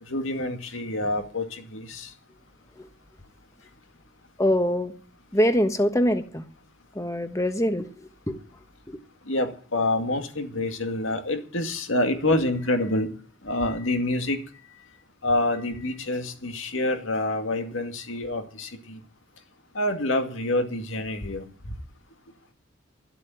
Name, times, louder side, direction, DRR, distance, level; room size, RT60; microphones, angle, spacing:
voice 1, 0.1-2.1 9.3-13.1 13.4-14.4 15.2-19.0 19.7-21.4, left 1 dB, 80° left, 2.2 m, -27 dB
voice 2, 4.4-4.9 5.3-6.5 6.9-8.4 8.9-9.0, equal, 15° left, 1.3 m, -24 dB
13.0 x 8.3 x 9.4 m
head